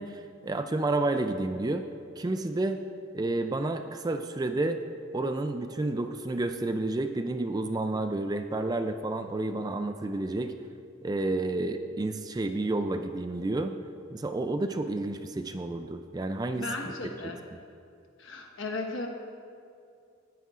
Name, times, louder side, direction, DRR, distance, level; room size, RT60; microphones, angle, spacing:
voice 1, 0.0-1.9 2.2-2.8 3.1-4.8 5.1-10.5 11.0-13.8 14.1-16.7 17.2-17.4, right 2 dB, 20° right, 7 dB, 0.3 m, -30 dB
voice 2, 16.6-17.4 18.2-19.1, left 3 dB, 65° left, 2 dB, 1.3 m, -35 dB
19.5 x 9.2 x 2.5 m, 2.5 s
head